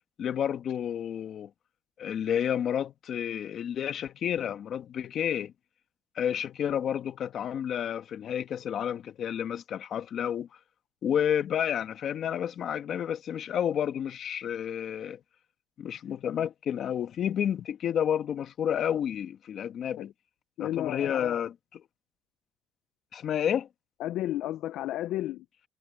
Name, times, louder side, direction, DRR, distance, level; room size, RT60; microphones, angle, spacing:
voice 1, 0.2-1.5 2.0-5.5 6.1-10.5 11.0-15.2 15.8-20.1 20.6-21.8 23.1-23.7, left 9 dB, 65° left, 1.6 m, -30 dB
voice 2, 20.6-21.4 24.0-25.5, left 14 dB, 90° left, 0.5 m, -32 dB
cardioid pair, 95°, 0 cm